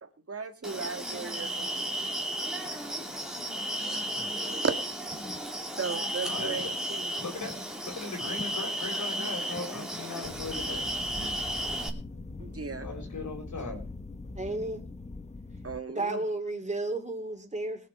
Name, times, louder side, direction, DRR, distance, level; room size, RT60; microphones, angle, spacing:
voice 1, 0.0-2.0 4.5-4.8 5.7-7.1 12.4-12.9 15.6-16.2, right 5 dB, 45° right, 7 dB, 1.8 m, -36 dB
sound 1, 0.6-11.9, right 1 dB, ahead, 2.8 m, -34 dB
voice 2, 6.2-6.7 7.2-7.5 7.8-10.9 12.8-13.9, left 3 dB, 70° left, 1 dB, 4.2 m, -38 dB
sound 2, 10.2-15.8, left 3 dB, 20° left, 0.9 m, -42 dB
voice 3, 14.4-14.8 16.0-17.9, right 2 dB, 20° right, 4 dB, 3.4 m, -32 dB
21.5 x 7.5 x 4.8 m, 0.33 s
wide cardioid pair, 115°, 32 cm